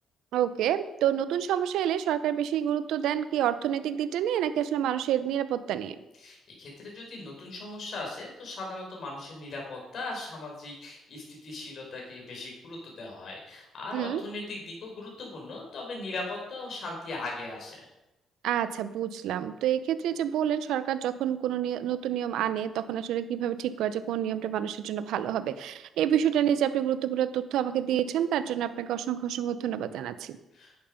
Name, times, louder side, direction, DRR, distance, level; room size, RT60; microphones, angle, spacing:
voice 1, 0.3-6.0 13.9-14.2 18.4-30.4, right 10 dB, 85° right, 13 dB, 0.7 m, -28 dB
voice 2, 6.2-17.9 30.5-30.8, left 2 dB, 60° left, -1 dB, 5.2 m, -39 dB
11.0 x 9.0 x 5.2 m, 0.95 s
cardioid pair, 90°, 0 cm